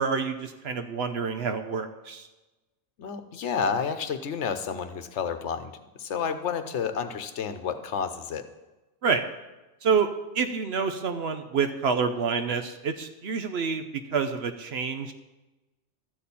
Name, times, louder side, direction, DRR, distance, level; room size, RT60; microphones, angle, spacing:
voice 1, 0.0-2.3 9.0-9.2 9.8-10.1 10.3-13.8 14.1-15.1, right 5 dB, 65° right, 7 dB, 0.9 m, -27 dB
voice 2, 3.0-5.7 6.0-8.5, left 6 dB, 75° left, 9 dB, 1.1 m, -30 dB
12.5 x 4.2 x 8.3 m, 1.1 s
omnidirectional pair, 1.2 m